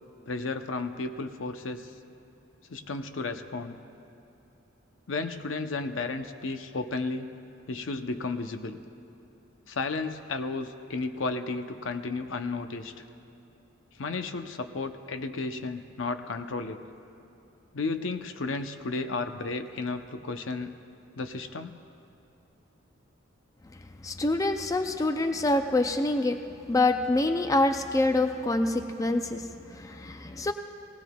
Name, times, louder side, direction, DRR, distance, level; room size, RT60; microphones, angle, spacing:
voice 1, 0.3-1.9 2.7-3.8 5.1-7.3 7.7-8.8 9.7-13.0 13.9-16.8 17.7-20.7 21.1-21.7, left 3 dB, 80° left, 8 dB, 0.7 m, -33 dB
voice 2, 24.0-26.4 26.7-30.5, left 2 dB, 15° left, 7 dB, 0.4 m, -26 dB
19.0 x 17.0 x 2.3 m, 2.8 s
head